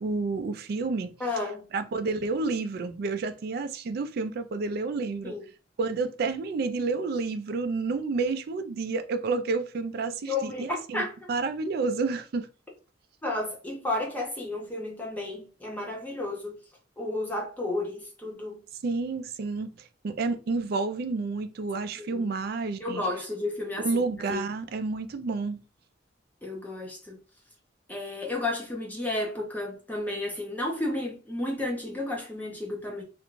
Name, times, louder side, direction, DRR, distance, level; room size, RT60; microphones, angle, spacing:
voice 1, 0.0-1.1 1.7-5.3 5.8-12.5 18.8-23.1 23.8-25.6, right 3 dB, 55° right, 0.3 m, -30 dB
voice 2, 1.2-1.7 5.2-5.4 10.2-11.3 13.2-16.6 17.0-18.6 22.0-22.3 22.8-23.9 24.3-24.4 26.4-27.2 27.9-33.0, left 2 dB, 10° left, 0.5 m, -32 dB
2.5 x 2.2 x 3.0 m
head